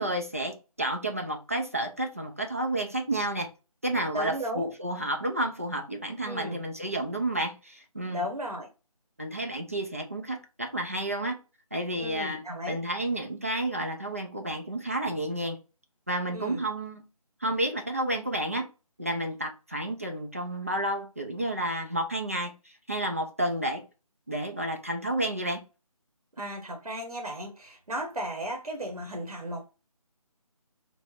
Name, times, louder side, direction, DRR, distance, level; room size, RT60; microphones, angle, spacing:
voice 1, 0.0-3.5 3.8-8.3 9.2-11.4 11.7-15.6 16.1-17.0 17.4-18.7 19.0-22.5 22.9-23.8 24.3-25.6, right 1 dB, 25° right, 0.3 m, -31 dB
voice 2, 4.1-4.7 6.2-6.6 8.1-8.7 12.0-12.8 16.3-16.6 26.4-29.7, equal, 90° right, 1.0 m, -35 dB
3.2 x 2.0 x 3.7 m
figure-of-eight pair, 160°, 19 cm